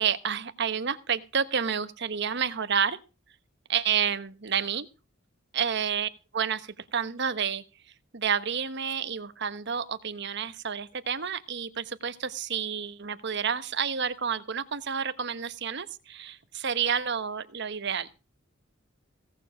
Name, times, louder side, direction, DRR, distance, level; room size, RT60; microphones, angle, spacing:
voice 1, 0.0-3.0 3.7-4.9 5.5-7.6 8.1-18.1, right 7 dB, 60° right, 12 dB, 1.1 m, -30 dB
17.0 x 7.2 x 6.3 m, 0.31 s
head